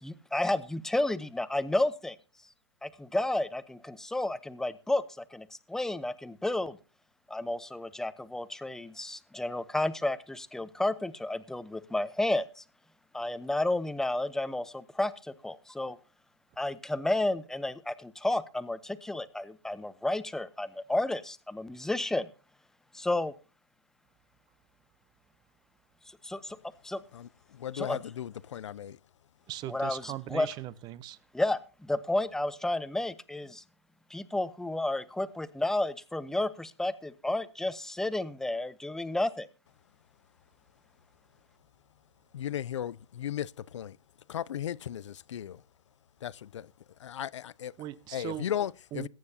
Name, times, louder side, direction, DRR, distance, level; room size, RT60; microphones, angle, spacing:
voice 1, 0.0-2.2 2.8-6.8 7.3-12.6 13.1-16.0 16.6-22.3 22.9-23.3 26.2-26.6 26.8-27.0 27.7-28.0 29.7-30.5 31.3-33.6 34.1-39.5, left 1 dB, 5° left, 0.8 m, -31 dB
voice 2, 27.1-29.0 42.3-44.0 44.3-45.6 46.2-46.7 47.0-47.7 48.1-49.1, left 10 dB, 80° left, 0.5 m, -36 dB
voice 3, 29.5-31.2 47.8-48.5 48.9-49.1, right 13 dB, 30° right, 0.8 m, -39 dB
21.5 x 9.5 x 2.8 m
hypercardioid pair, 130°, 15 cm